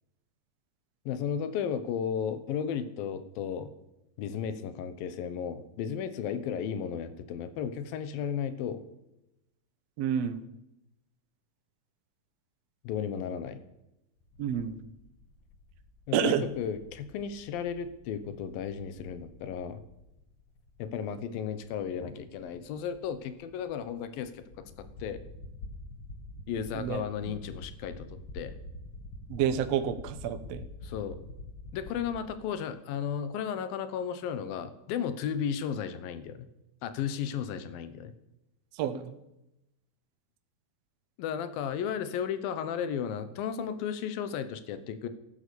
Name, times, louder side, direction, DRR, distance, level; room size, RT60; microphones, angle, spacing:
voice 1, 1.1-3.7 4.2-8.8 12.8-13.6 16.1-19.8 20.8-25.2 26.5-28.6 30.8-31.2 31.7-36.5 36.8-38.1 41.2-45.1, left 8 dB, 80° left, 12 dB, 2.8 m, -34 dB
voice 2, 10.0-10.4 14.4-14.8 16.1-16.5 26.7-27.0 29.3-30.6 38.7-39.2, right 9 dB, 70° right, 10 dB, 1.6 m, -29 dB
sound 1, 14.3-32.2, left 2 dB, 45° left, 1.6 m, -47 dB
13.0 x 12.0 x 8.4 m, 0.90 s
omnidirectional pair, 4.1 m